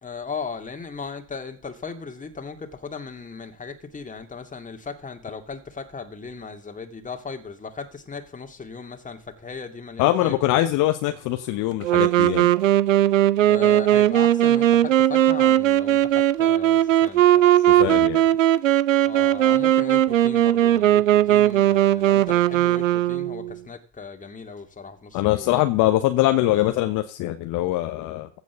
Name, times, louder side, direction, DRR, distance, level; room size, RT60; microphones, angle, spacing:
voice 1, 0.0-10.5 13.4-17.5 19.0-25.7, left 5 dB, 20° left, 2.4 m, -37 dB
voice 2, 10.0-12.5 17.8-18.2 25.1-28.3, left 15 dB, 55° left, 1.1 m, -22 dB
Wind instrument woodwind instrument, 11.8-23.5, right 12 dB, 80° right, 0.6 m, -18 dB
15.5 x 6.3 x 6.9 m
figure-of-eight pair, 60°, 38 cm